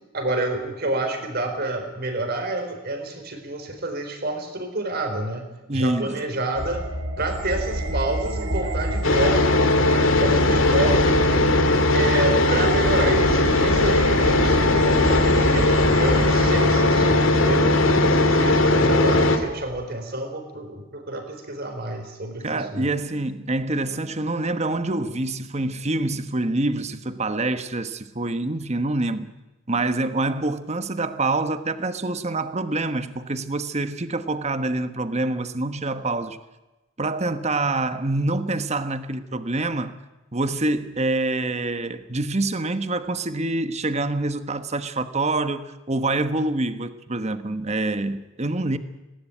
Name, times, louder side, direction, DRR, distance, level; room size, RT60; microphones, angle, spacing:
voice 1, 0.1-6.9 7.2-9.5 9.8-11.1 11.9-17.2 17.4-22.9, right 2 dB, 50° right, 6 dB, 4.2 m, -28 dB
voice 2, 5.7-6.2 22.4-29.3 29.7-36.4 37.0-39.9 40.3-48.8, right 2 dB, 30° right, 11 dB, 1.2 m, -26 dB
sound 1, 6.5-19.9, right 1 dB, 75° right, 3.3 m, -30 dB
sound 2, 9.0-19.4, left 2 dB, 70° left, 2.3 m, -19 dB
18.5 x 18.0 x 9.1 m, 1.1 s
head